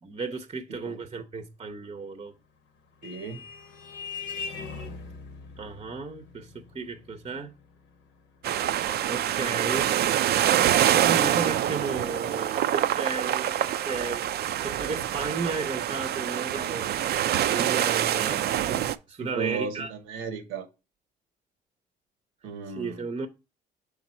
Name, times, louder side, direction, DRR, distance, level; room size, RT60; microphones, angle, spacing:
voice 1, 0.0-2.4 5.6-7.5 9.1-9.9 10.9-14.3 14.6-17.1 17.5-19.9 22.7-23.3, right 4 dB, 30° right, 0.7 m, -34 dB
Vehicle horn car horn honking, 2.4-11.4, left 5 dB, 75° left, 1.0 m, -43 dB
voice 2, 3.0-3.4 19.2-20.7 22.4-23.0, right 5 dB, 85° right, 0.9 m, -35 dB
sound 1, 8.4-18.9, right 11 dB, 60° right, 0.4 m, -25 dB
6.0 x 3.7 x 4.2 m
supercardioid pair, 60°, 19 cm